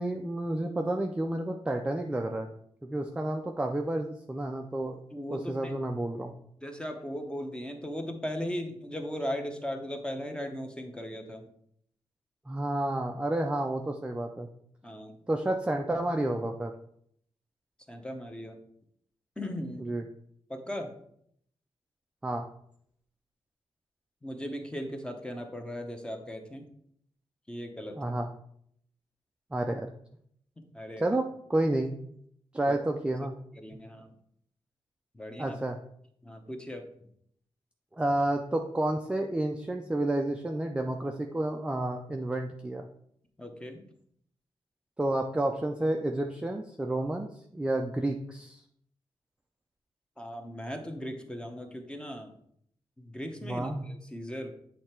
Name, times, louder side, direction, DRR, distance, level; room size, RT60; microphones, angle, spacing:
voice 1, 0.0-2.5 2.8-5.0 5.3-6.3 12.5-14.5 15.3-16.7 19.9-20.0 22.2-22.4 28.0-28.3 29.5-29.9 31.0-31.2 31.5-32.0 32.5-33.3 35.4-35.8 37.9-42.9 45.0-48.6 53.5-53.8, right 1 dB, 10° right, 3 dB, 0.4 m, -30 dB
voice 2, 5.1-5.8 6.6-11.5 14.8-15.2 17.9-18.6 19.4-19.9 20.5-21.0 24.2-26.7 27.5-28.1 30.6-31.1 32.7-32.8 33.1-33.3 33.5-34.1 35.1-35.6 36.2-37.1 43.4-43.9 50.2-52.4 53.0-54.5, equal, 10° left, 5 dB, 0.8 m, -38 dB
8.5 x 3.2 x 4.4 m, 0.68 s
wide cardioid pair, 155°, 10 cm